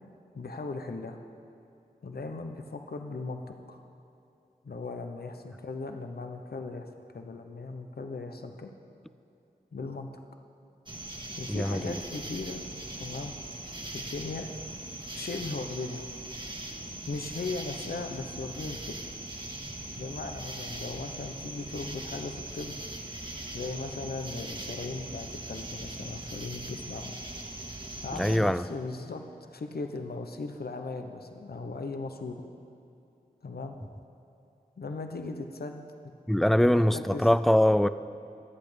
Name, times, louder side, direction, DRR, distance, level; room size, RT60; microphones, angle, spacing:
voice 1, 0.3-1.2 2.0-3.8 4.6-8.7 9.7-10.1 11.4-12.6 13.0-13.3 13.9-14.5 15.1-16.0 17.1-19.1 20.0-22.8 23.5-27.2 28.0-29.2 29.5-32.4 33.4-33.8 34.8-35.9 36.4-37.3, left 3 dB, 75° left, 5 dB, 1.0 m, -38 dB
sound 1, 10.9-28.4, right 1 dB, 30° right, 1.7 m, -40 dB
voice 2, 11.5-12.0 28.2-28.6 36.3-37.9, left 1 dB, ahead, 14 dB, 0.4 m, -23 dB
24.5 x 8.6 x 5.2 m, 2.7 s
cardioid pair, 45°, 16 cm